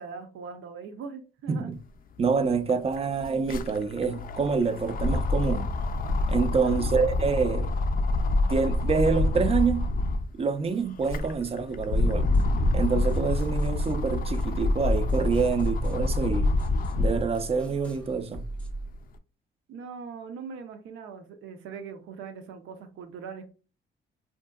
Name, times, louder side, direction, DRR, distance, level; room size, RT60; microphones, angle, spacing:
voice 1, 0.0-1.7 6.6-7.0 19.7-23.5, right 5 dB, 80° right, 0.6 m, -41 dB
voice 2, 1.5-1.8 2.2-5.7 6.3-7.7 8.5-9.9 10.4-12.3 12.7-16.5 17.0-18.4, right 5 dB, 30° right, 0.4 m, -26 dB
sound 1, 2.2-2.3 2.5-10.3 10.8-17.3 17.8-19.0, left 2 dB, 45° left, 0.4 m, -27 dB
sound 2, 12.0-18.9, right 1 dB, 5° left, 0.7 m, -39 dB
2.9 x 2.7 x 2.3 m
cardioid pair, 90°, 20 cm